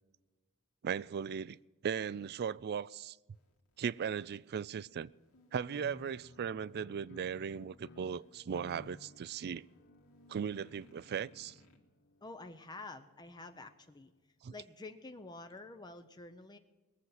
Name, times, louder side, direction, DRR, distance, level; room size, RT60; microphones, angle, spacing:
voice 1, 0.8-1.6 1.8-3.2 3.8-5.1 5.5-9.7 10.3-11.6 14.4-14.5, right 7 dB, 45° right, 0.3 m, -37 dB
sound 1, 3.3-11.8, left 2 dB, 75° left, 2.0 m, -65 dB
sound 2, 5.7-14.0, left 2 dB, 50° left, 0.8 m, -58 dB
voice 2, 12.2-14.1 14.5-16.6, left 2 dB, 20° left, 0.6 m, -49 dB
21.0 x 7.9 x 5.7 m
head